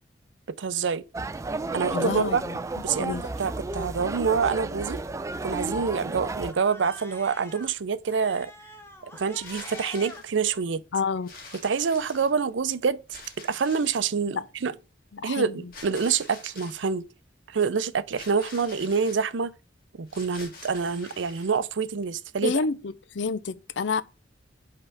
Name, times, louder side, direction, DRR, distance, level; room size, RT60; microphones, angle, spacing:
voice 1, 0.6-1.1 1.7-2.4 2.8-5.0 5.4-8.5 9.2-10.8 11.6-13.0 13.4-14.7 15.2-17.0 17.5-19.5 20.0-22.6, right 5 dB, 90° right, 0.5 m, -26 dB
sound 1, 1.1-6.5, right 2 dB, 15° right, 0.3 m, -32 dB
voice 2, 1.9-2.6 3.0-3.3 10.9-11.3 14.3-14.5 15.1-15.7 22.4-24.0, left 5 dB, 75° left, 0.5 m, -29 dB
Cat, 5.4-7.7 8.1-10.2, left 1 dB, 15° left, 1.0 m, -45 dB
sound 2, 9.3-10.3 11.2-12.5 13.1-14.1 15.7-16.9 18.1-19.2 20.1-21.6, left 3 dB, 55° left, 2.0 m, -46 dB
5.5 x 3.7 x 5.8 m
head